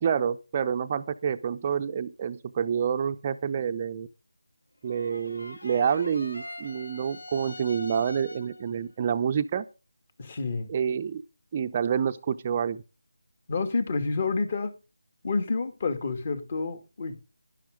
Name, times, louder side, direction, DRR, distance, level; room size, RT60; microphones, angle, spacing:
voice 1, 0.0-4.1 4.8-9.7 10.7-11.2 11.5-12.8, right 7 dB, 25° right, 0.6 m, -28 dB
sound 1, 4.9-8.7, left 1 dB, 80° left, 1.7 m, -43 dB
voice 2, 10.2-10.7 13.5-14.7 15.2-17.2, left 4 dB, 40° left, 2.3 m, -29 dB
11.5 x 11.5 x 3.7 m
figure-of-eight pair, 165°, 0 cm